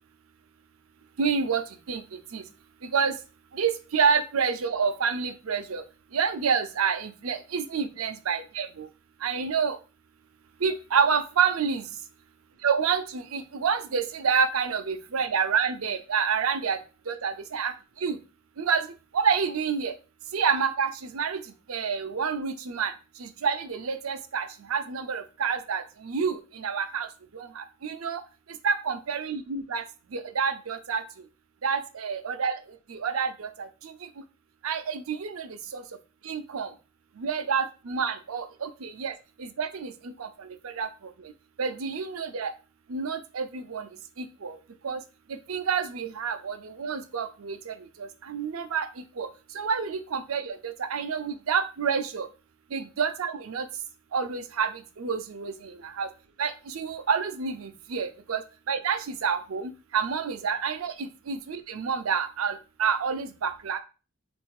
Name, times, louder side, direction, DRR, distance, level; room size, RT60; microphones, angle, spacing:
voice 1, 1.2-2.5 2.8-3.2 3.5-5.8 6.1-8.9 9.2-9.8 10.6-11.9 12.6-16.8 17.1-18.2 18.6-19.9 20.3-28.2 28.5-29.8 30.1-31.2 31.6-34.2 34.6-35.8 36.2-36.7 37.2-41.3 41.6-42.5 42.9-44.6 44.8-45.0 45.3-52.3 52.7-53.7 54.1-56.1 56.4-63.8, right 6 dB, 75° right, 9 dB, 0.6 m, -29 dB
4.2 x 2.6 x 4.7 m, 0.33 s
head